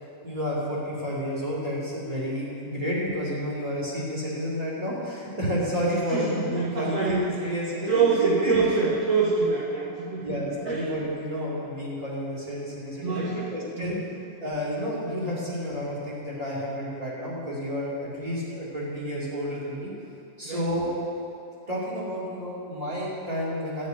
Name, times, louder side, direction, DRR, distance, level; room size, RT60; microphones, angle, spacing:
voice 1, 0.2-8.5 10.2-14.0 14.4-19.9 20.4-21.0 21.7-23.9, equal, 20° right, -7 dB, 1.0 m, -30 dB
voice 2, 6.1-7.2 7.8-10.4 10.6-10.8 13.0-14.1 20.4-20.6, right 5 dB, 50° right, -9 dB, 2.5 m, -26 dB
13.0 x 5.4 x 9.1 m, 2.7 s
omnidirectional pair, 4.7 m